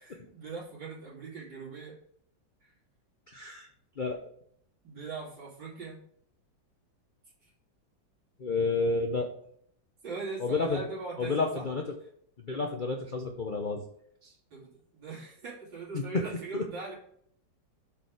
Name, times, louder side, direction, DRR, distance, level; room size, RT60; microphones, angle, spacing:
voice 1, 0.0-1.9 2.6-2.7 4.8-6.0 7.4-7.5 10.0-11.7 14.5-17.0, right 4 dB, 70° right, -5 dB, 3.5 m, -40 dB
voice 2, 3.3-3.7 4.0-4.2 8.4-9.3 10.4-10.8 11.2-11.8 12.4-13.8 14.2-14.3 15.9-16.0 16.5-16.6, left 3 dB, 75° left, 3 dB, 0.4 m, -30 dB
7.3 x 4.4 x 4.9 m, 0.66 s
omnidirectional pair, 2.1 m